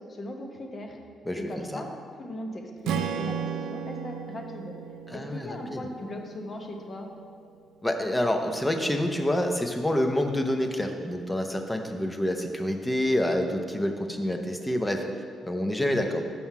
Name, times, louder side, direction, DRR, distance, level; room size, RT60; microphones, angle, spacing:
voice 1, 0.1-1.0 1.4-1.9 2.2-4.7 5.1-7.1, left 1 dB, 35° left, 3 dB, 1.0 m, -38 dB
voice 2, 1.3-1.8 5.1-5.9 7.8-15.0 15.4-16.2, left 1 dB, 10° left, 4 dB, 0.7 m, -27 dB
Strum, 2.8-7.1, right 7 dB, 85° right, 0.4 m, -35 dB
5.9 x 5.5 x 5.6 m, 2.2 s
cardioid pair, 90°, 0 cm